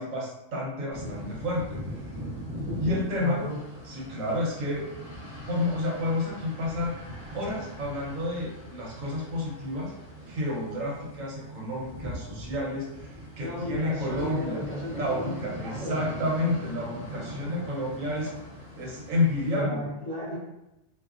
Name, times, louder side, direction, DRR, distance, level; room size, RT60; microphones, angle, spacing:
voice 1, 0.0-2.1 2.8-3.4 3.8-4.8 5.5-7.0 7.3-9.9 10.3-14.6 14.9-18.3 18.8-19.8, left 1 dB, 70° right, -3 dB, 1.0 m, -30 dB
sound 1, 0.9-19.6, equal, 35° right, 0.6 m, -40 dB
voice 2, 3.2-3.6 13.4-16.1 17.4-17.6 19.5-20.4, equal, 30° left, -11 dB, 0.9 m, -35 dB
2.4 x 2.2 x 2.4 m, 0.93 s
omnidirectional pair, 1.5 m